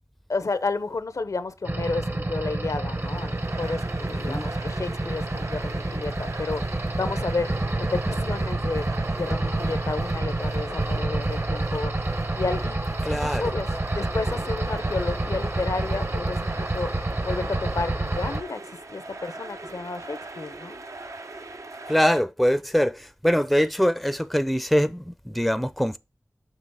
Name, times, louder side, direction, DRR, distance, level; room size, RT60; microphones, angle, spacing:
voice 1, 0.3-6.6 7.0-8.9 9.2-11.9 12.4-16.9 17.2-20.8, left 3 dB, 75° left, 0.6 m, -31 dB
sound 1, 1.6-18.4, right 2 dB, 40° right, 0.9 m, -28 dB
sound 2, 2.7-22.2, right 2 dB, 65° right, 0.6 m, -41 dB
voice 2, 4.1-4.5 13.0-13.5 21.9-26.0, equal, ahead, 0.5 m, -23 dB
6.6 x 2.9 x 5.5 m
wide cardioid pair, 50°, 6 cm